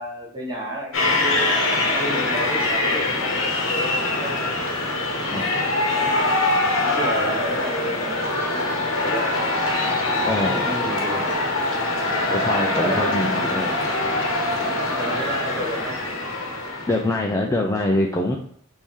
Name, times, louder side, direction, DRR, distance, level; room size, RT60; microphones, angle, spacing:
voice 1, 0.0-1.5 1.9-4.5 5.2-5.6 5.9-6.4 6.8-8.5 8.8-9.4 10.4-11.3 12.7-13.9 14.7-16.0, right 1 dB, 20° right, -4 dB, 1.2 m, -32 dB
sound 1, 0.9-17.2, left 2 dB, 75° left, 1.0 m, -23 dB
voice 2, 5.2-5.5 10.2-10.7 12.3-13.7 16.9-18.4, left 1 dB, 15° left, -1 dB, 0.4 m, -24 dB
3.7 x 2.7 x 4.6 m, 0.64 s
head